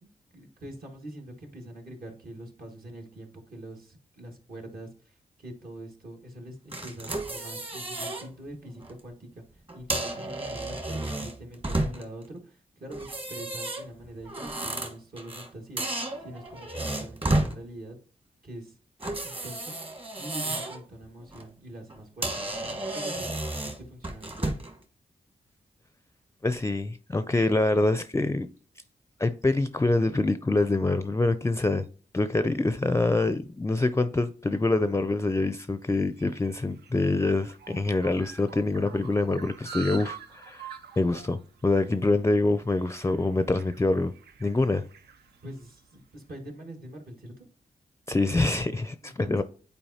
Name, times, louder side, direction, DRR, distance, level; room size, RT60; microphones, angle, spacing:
voice 1, 0.0-18.0 18.4-18.8 19.2-19.7 20.2-22.5 22.9-23.3 23.6-24.7 45.4-47.5 48.7-49.4, right 1 dB, 65° right, 1.8 m, -44 dB
sound 1, 6.7-8.3 8.7-8.9 9.7-12.2 12.9-15.5 15.8-17.5 19.0-20.8 21.2-21.4 21.9-22.0 22.2-24.8, right 2 dB, 35° right, 1.5 m, -32 dB
voice 2, 26.4-28.5 29.2-31.9 32.1-40.7 41.0-44.1 44.4-44.8 48.1-49.4, left 2 dB, 15° left, 0.4 m, -25 dB
sound 2, 35.5-46.1, right 6 dB, 85° right, 0.5 m, -47 dB
8.7 x 4.2 x 2.8 m
cardioid pair, 45°, 17 cm